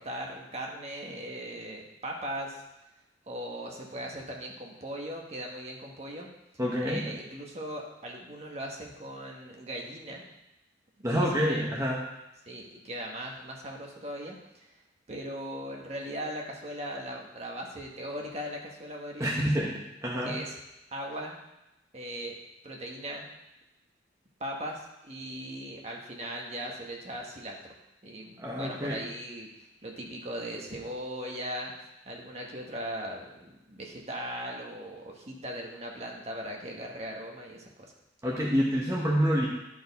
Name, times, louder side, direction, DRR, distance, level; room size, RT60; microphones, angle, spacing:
voice 1, 0.0-2.6 3.3-6.3 6.8-10.2 11.1-11.6 12.5-14.7 15.1-19.5 20.2-20.5 20.9-21.4 21.9-22.3 22.6-23.3 24.4-27.7 28.0-31.7 32.0-37.9, equal, 35° right, 0 dB, 1.2 m, -39 dB
voice 2, 6.6-7.1 11.0-12.0 19.2-19.7 20.0-20.4 28.4-29.0 38.2-39.5, equal, 15° right, -4 dB, 0.9 m, -27 dB
11.0 x 4.5 x 4.1 m, 0.94 s
head